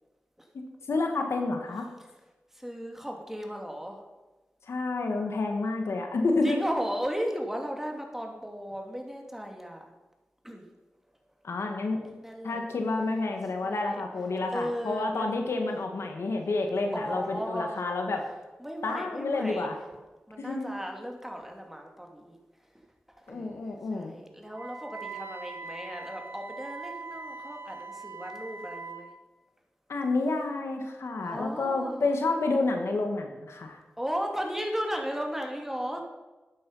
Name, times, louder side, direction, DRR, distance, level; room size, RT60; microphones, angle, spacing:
voice 1, 0.5-1.9 4.7-6.6 11.4-12.0 12.4-18.2 18.8-19.8 20.4-20.7 23.3-24.2 29.9-33.8, left 3 dB, 85° left, 3 dB, 2.0 m, -29 dB
voice 2, 2.5-4.0 6.4-9.8 10.4-10.6 12.2-12.6 13.6-14.0 14.5-15.3 16.9-17.8 18.6-19.7 20.3-22.4 22.7-22.8 23.2-23.6 23.9-29.1 31.2-32.1 34.0-36.0, equal, 5° right, 2 dB, 3.1 m, -35 dB
Wind instrument woodwind instrument, 24.5-29.1, right 4 dB, 65° right, 1.6 m, -41 dB
12.5 x 9.2 x 5.7 m, 1.2 s
cardioid pair, 45°, 4 cm